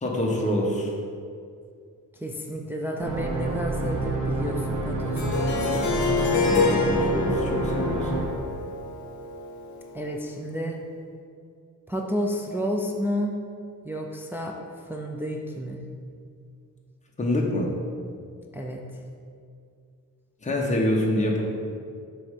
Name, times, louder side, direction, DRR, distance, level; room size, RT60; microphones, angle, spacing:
voice 1, 0.0-0.9 6.2-8.2 17.2-17.7 20.4-21.4, left 1 dB, 20° left, -1 dB, 0.9 m, -26 dB
voice 2, 2.1-6.0 9.9-10.8 11.9-13.3 13.8-14.6 14.9-15.9 18.5-18.9, equal, 5° right, 0 dB, 0.3 m, -31 dB
sound 1, 3.0-8.3, right 1 dB, 70° right, 1.2 m, -28 dB
Harp, 5.2-10.1, left 3 dB, 60° left, 0.8 m, -27 dB
6.8 x 3.1 x 5.2 m, 2.3 s
wide cardioid pair, 150°, 33 cm